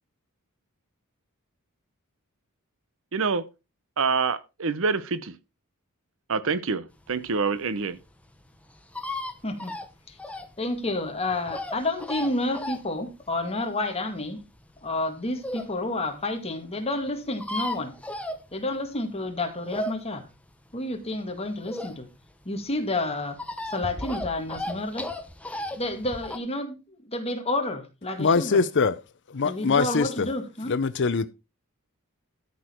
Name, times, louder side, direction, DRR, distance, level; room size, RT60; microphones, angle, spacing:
voice 1, 3.1-3.4 4.0-5.3 6.3-8.0, right 4 dB, 65° right, 0.8 m, -26 dB
sound 1, 7.1-15.8 16.2-16.3 16.5-16.6 16.8-16.9 17.1-19.0 19.3-22.3 22.6-26.4, left 1 dB, 5° left, 1.1 m, -36 dB
voice 2, 10.6-14.4 14.8-17.9 18.5-20.2 20.7-22.1 22.5-23.4 23.7-25.1 25.8-28.6 29.4-30.7, left 2 dB, 25° left, 2.1 m, -30 dB
voice 3, 28.2-29.0 29.3-30.1 30.7-31.3, left 4 dB, 55° left, 0.6 m, -22 dB
13.0 x 6.7 x 4.4 m
head